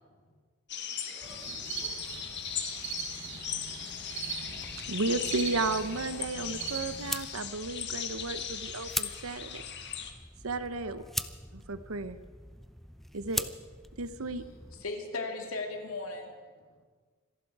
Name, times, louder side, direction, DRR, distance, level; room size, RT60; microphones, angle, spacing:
sound 1, 0.7-10.1, left 9 dB, 55° left, 1.5 m, -38 dB
voice 1, 0.9-2.1 3.7-4.1 10.8-11.1, right 1 dB, 25° right, -7 dB, 3.6 m, -54 dB
sound 2, 1.2-7.1, right 6 dB, 65° right, 3.7 m, -40 dB
sound 3, 4.5-14.8, equal, ahead, 0.5 m, -42 dB
voice 2, 4.9-9.6 10.4-11.0 11.7-12.2 13.1-13.5 14.0-14.4, right 3 dB, 90° right, 12 dB, 0.9 m, -33 dB
voice 3, 14.2-16.8, left 3 dB, 90° left, 3 dB, 2.5 m, -39 dB
26.0 x 11.5 x 4.8 m, 1.5 s
head